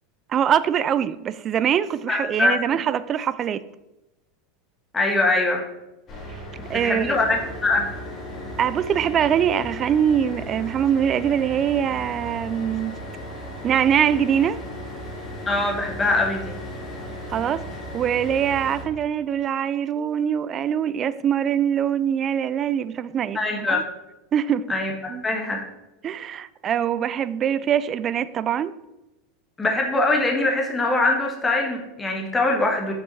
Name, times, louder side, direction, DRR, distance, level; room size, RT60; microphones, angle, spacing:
voice 1, 0.3-3.6 6.3-6.4 6.7-7.2 8.6-12.9 13.6-14.6 17.3-17.6 17.9-23.4 23.7-23.8 24.3-24.7 25.1-25.2 26.0-28.7, right 9 dB, 35° right, 0.3 m, -23 dB
voice 2, 2.1-2.6 4.9-5.6 6.7-7.9 15.5-16.6 23.3-23.9 24.7-25.6 29.6-32.9, left 2 dB, 20° left, 1.5 m, -23 dB
sound 1, 6.1-18.8, equal, 35° left, 2.6 m, -36 dB
7.3 x 6.2 x 4.3 m
hypercardioid pair, 85°, 0 cm